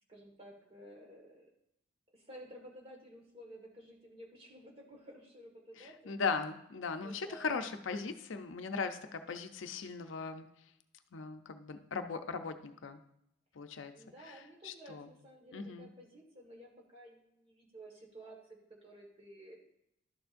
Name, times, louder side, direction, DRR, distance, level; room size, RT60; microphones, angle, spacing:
voice 1, 0.1-1.5 2.1-6.1 7.0-7.6 13.8-18.4 18.7-19.6, right 1 dB, 30° right, 0 dB, 1.6 m, -53 dB
voice 2, 5.8-10.5 11.1-13.0 13.5-13.9 14.3-15.1 15.5-15.9, left 4 dB, 75° left, 8 dB, 0.6 m, -38 dB
12.0 x 6.9 x 2.6 m, 0.78 s
head